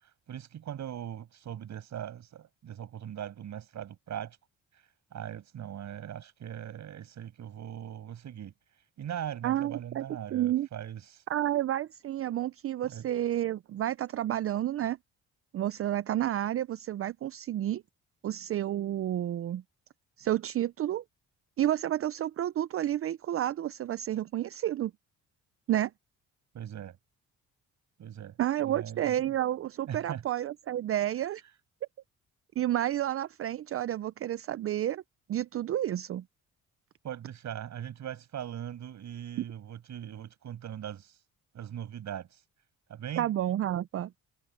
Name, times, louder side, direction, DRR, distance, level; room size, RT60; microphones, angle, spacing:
voice 1, 0.3-4.4 5.1-8.5 9.0-11.2 12.8-13.1 26.5-27.0 28.0-29.3 29.9-30.2 37.0-41.2 41.5-42.4 42.9-43.3, right 10 dB, 65° right, 7.0 m, -40 dB
voice 2, 9.4-10.0 10.3-10.7 11.3-15.0 15.5-17.8 18.2-19.6 20.2-21.0 21.6-24.9 25.7-25.9 28.4-31.4 32.6-35.0 35.3-36.2 39.4-39.5 43.2-44.1, right 12 dB, 50° right, 0.5 m, -30 dB
cardioid pair, 90°, 30 cm